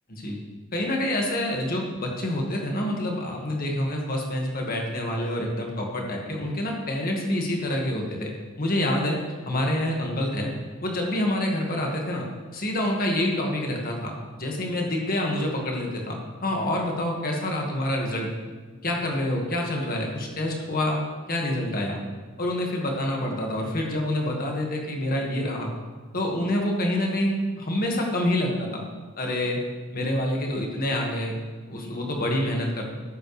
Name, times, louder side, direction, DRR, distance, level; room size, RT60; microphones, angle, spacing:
voice 1, 0.7-8.3 8.6-9.2 9.4-10.5 10.8-12.3 12.5-18.3 18.8-21.0 21.3-22.0 22.4-25.7 26.1-28.8 29.2-29.6 29.9-31.3 31.7-32.9, left 1 dB, 40° left, 0 dB, 1.7 m, -27 dB
13.5 x 7.7 x 3.3 m, 1.4 s
head